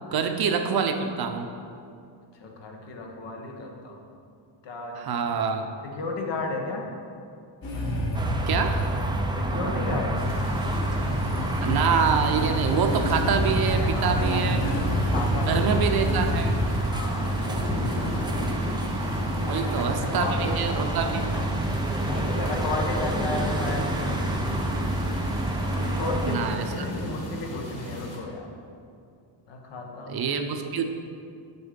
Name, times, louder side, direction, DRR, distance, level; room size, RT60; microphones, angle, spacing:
voice 1, 0.1-1.5 4.9-5.7 8.5-8.8 11.6-14.6 15.5-16.6 19.4-21.2 26.3-26.7 30.1-30.8, right 6 dB, 50° right, 6 dB, 0.8 m, -26 dB
voice 2, 2.4-3.9 4.6-5.0 5.8-6.9 9.4-10.2 13.7-14.5 14.9-15.6 16.6-18.5 19.3-20.5 21.3-21.7 22.0-24.6 25.7-28.5 29.5-30.3, left 3 dB, 65° left, 1 dB, 1.5 m, -34 dB
Motorcycle / Engine starting, 7.6-16.7, equal, 50° left, 1.9 m, -29 dB
sound 1, 8.1-26.4, right 1 dB, 10° right, 0.5 m, -28 dB
sound 2, 10.1-28.2, left 1 dB, 30° left, 1.9 m, -35 dB
8.4 x 7.0 x 5.2 m, 2.4 s
cardioid pair, 145°, 46 cm